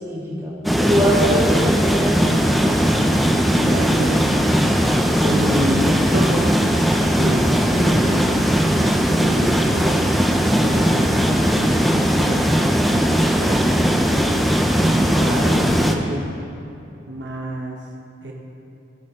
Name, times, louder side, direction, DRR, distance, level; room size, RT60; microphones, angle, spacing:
voice 1, 0.0-2.2 7.7-8.1 15.0-15.7, equal, 15° right, -6 dB, 1.8 m, -24 dB
sound 1, 0.6-15.9, equal, ahead, 0.5 m, -18 dB
voice 2, 3.6-4.3 5.2-6.6 7.1-8.4 9.2-11.1 11.8-12.5 13.1-13.8 14.8-16.3 17.1-17.9 18.2-18.3, right 1 dB, 70° right, -1 dB, 0.9 m, -28 dB
16.5 x 5.5 x 3.7 m, 2.8 s
head